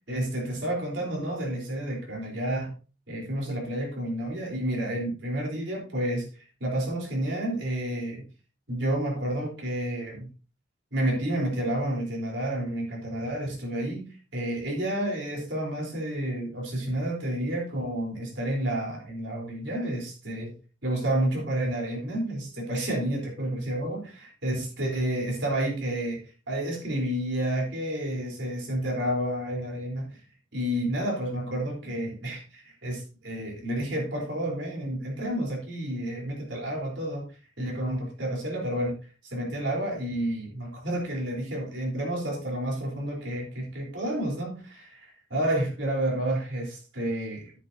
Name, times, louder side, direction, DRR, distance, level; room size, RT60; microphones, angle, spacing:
voice 1, 0.1-2.7 3.1-6.3 6.6-8.2 8.7-10.3 10.9-20.5 20.8-24.1 24.4-26.2 26.5-30.1 30.5-37.2 37.6-38.9 39.2-47.6, right 1 dB, 90° right, -1 dB, 4.0 m, -30 dB
9.7 x 9.1 x 2.8 m, 0.35 s
head